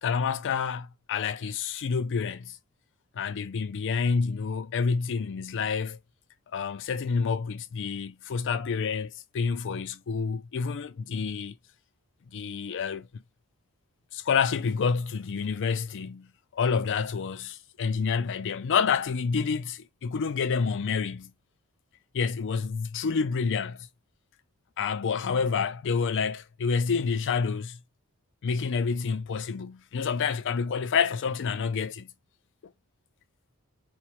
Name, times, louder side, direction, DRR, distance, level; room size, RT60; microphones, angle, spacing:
voice 1, 0.0-2.6 3.2-6.0 6.5-11.5 12.3-13.2 14.1-21.3 22.1-23.9 24.8-27.8 28.4-32.1, left 5 dB, 55° left, 0.4 m, -28 dB
4.9 x 2.1 x 2.9 m
head